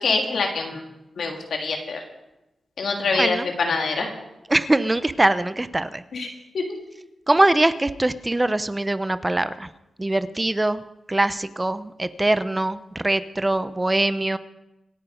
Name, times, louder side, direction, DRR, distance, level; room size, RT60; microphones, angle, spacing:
voice 1, 0.0-0.8 1.2-2.0 2.8-4.1 6.1-6.3 6.5-6.6, left 4 dB, 75° left, 2 dB, 3.1 m, -25 dB
voice 2, 3.1-3.5 4.5-6.0 7.3-9.7 10.0-10.8 11.1-14.4, right 2 dB, 20° right, 13 dB, 0.7 m, -22 dB
26.0 x 9.5 x 5.1 m, 0.96 s
wide cardioid pair, 90°, 0 cm